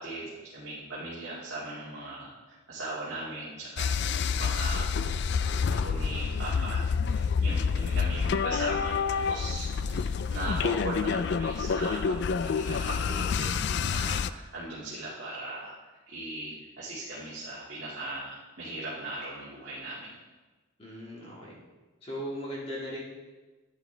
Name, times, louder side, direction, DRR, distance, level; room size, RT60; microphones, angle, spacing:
voice 1, 0.0-2.3 2.7-5.2 5.7-9.0 9.3-13.6 13.8-20.2, right 2 dB, 55° right, -8 dB, 2.1 m, -39 dB
sound 1, 3.8-14.3, left 6 dB, 55° left, 0.3 m, -28 dB
voice 2, 20.8-21.6 22.0-23.0, equal, 25° left, -5 dB, 2.0 m, -38 dB
12.5 x 9.5 x 3.4 m, 1.2 s
head